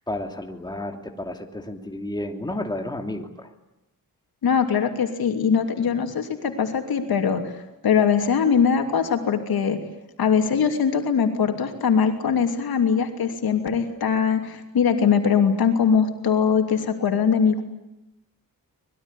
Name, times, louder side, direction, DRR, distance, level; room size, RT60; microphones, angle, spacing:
voice 1, 0.1-3.5, left 1 dB, 10° left, 4 dB, 2.8 m, -31 dB
voice 2, 4.4-7.5 7.8-9.8 10.2-17.6, left 6 dB, 90° left, 5 dB, 2.9 m, -21 dB
25.0 x 21.0 x 9.9 m, 0.90 s
wide cardioid pair, 115°, 35 cm